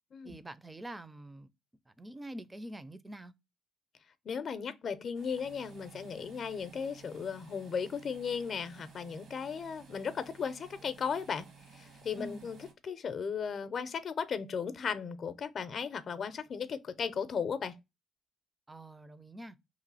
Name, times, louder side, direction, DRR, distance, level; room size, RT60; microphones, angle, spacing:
voice 1, 0.2-1.5 1.9-3.3 12.2-12.5 18.7-19.6, right 1 dB, 15° right, 0.4 m, -45 dB
voice 2, 4.3-11.5 11.7-12.6 12.8-17.7, left 6 dB, 55° left, 0.5 m, -36 dB
sound 1, 5.1-12.7, right 5 dB, 65° right, 1.0 m, -55 dB
3.0 x 2.4 x 4.0 m
cardioid pair, 90°, 0 cm